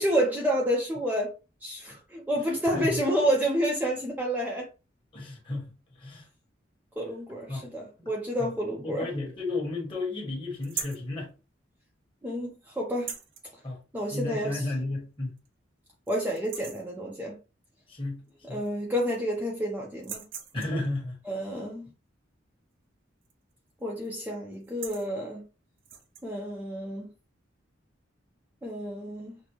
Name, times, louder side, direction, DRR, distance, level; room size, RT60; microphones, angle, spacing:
voice 1, 0.0-1.3 1.6-4.7 7.0-9.1 12.2-13.1 13.9-14.7 16.1-17.4 18.4-20.2 21.3-21.9 23.8-25.4 26.2-27.1 28.6-29.3, equal, 10° right, 0.6 m, -29 dB
voice 2, 5.1-5.7 6.0-6.2 7.5-7.7 8.0-8.1 8.8-11.3 13.6-13.8 14.1-15.3 17.9-18.2 18.5-18.6 20.5-21.1, left 2 dB, 30° left, 1.5 m, -33 dB
sound 1, 10.6-11.1 12.9-13.5 14.8-14.9 15.4-15.5 15.9-16.1 16.4-16.9 18.3-18.4 18.7-19.4 19.9-20.9 23.2-23.5 23.8-24.1 24.5-25.1 25.8-26.3, right 7 dB, 75° right, 0.6 m, -40 dB
6.1 x 2.1 x 3.0 m
head